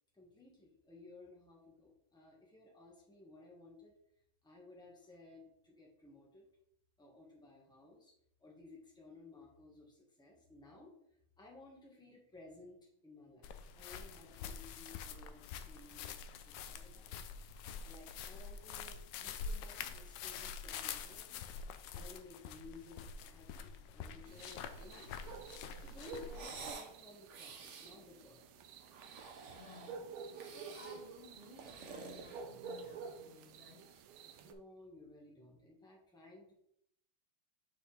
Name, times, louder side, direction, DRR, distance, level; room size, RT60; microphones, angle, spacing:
voice 1, 0.1-4.0 4.4-6.5 7.0-8.1 8.4-10.9 11.4-17.2 17.8-21.4 21.9-25.2 25.8-28.5 34.4-36.5, left 2 dB, ahead, -3 dB, 1.4 m, -57 dB
sound 1, 13.4-26.7, left 6 dB, 75° left, 1.1 m, -46 dB
sound 2, 24.3-34.5, right 5 dB, 80° right, 1.5 m, -51 dB
sound 3, 26.3-26.9 27.3-27.9 28.8-30.0 30.3-31.0 31.4-32.9, right 5 dB, 65° right, 0.7 m, -50 dB
voice 2, 29.5-34.1, left 2 dB, 30° left, -4 dB, 1.2 m, -57 dB
6.4 x 5.5 x 3.5 m, 0.73 s
omnidirectional pair, 2.3 m